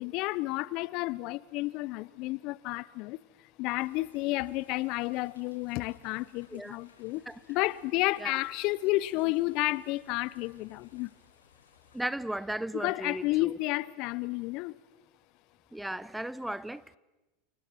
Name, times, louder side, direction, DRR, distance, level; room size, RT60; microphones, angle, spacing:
voice 1, 0.0-3.2 3.6-7.2 7.5-11.1 12.7-14.7, left 20 dB, 55° left, 0.8 m, -31 dB
sound 1, 3.8-12.0, left 5 dB, 85° left, 8.0 m, -63 dB
voice 2, 11.9-13.6 15.7-17.0, right 1 dB, 5° right, 0.8 m, -36 dB
29.5 x 29.0 x 6.0 m
hypercardioid pair, 90°, 0 cm